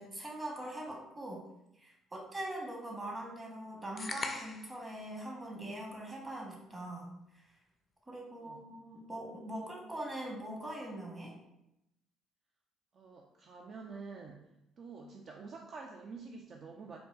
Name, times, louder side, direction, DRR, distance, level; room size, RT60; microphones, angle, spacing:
voice 1, 0.0-1.4 1.8-7.1 8.1-11.3, right 1 dB, 25° right, -1 dB, 1.0 m, -42 dB
sound 1, 4.0-4.8, left 3 dB, 30° left, 0.4 m, -39 dB
voice 2, 12.9-14.4 14.8-17.0, right 4 dB, 55° right, 1 dB, 0.3 m, -48 dB
4.0 x 2.2 x 2.3 m, 0.85 s
supercardioid pair, 65°, 0 cm